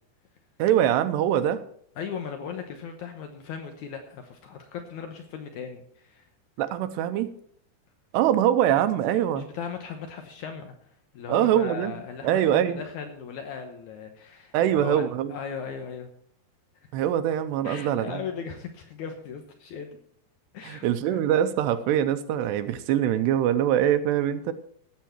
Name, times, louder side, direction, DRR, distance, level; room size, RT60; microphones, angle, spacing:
voice 1, 0.6-1.6 6.6-7.3 8.1-9.5 11.3-12.8 14.5-15.3 16.9-18.2 20.6-24.5, right 10 dB, 80° right, 10 dB, 2.8 m, -23 dB
voice 2, 2.0-6.3 9.4-10.7 11.1-15.0 15.3-16.1 17.6-20.0 20.5-21.2, left 6 dB, 85° left, 5 dB, 1.7 m, -38 dB
17.5 x 8.2 x 4.5 m, 0.66 s
omnidirectional pair, 5.0 m